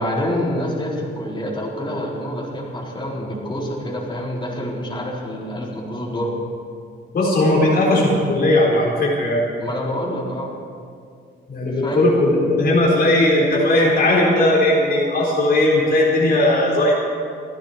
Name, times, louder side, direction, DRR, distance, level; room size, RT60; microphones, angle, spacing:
voice 1, 0.0-6.3 9.6-10.5 11.8-12.1, equal, 25° left, -5 dB, 4.4 m, -27 dB
voice 2, 7.1-9.4 11.5-17.0, left 1 dB, 50° left, -4 dB, 4.5 m, -17 dB
29.0 x 10.0 x 4.5 m, 2.3 s
cardioid pair, 90°, 20 cm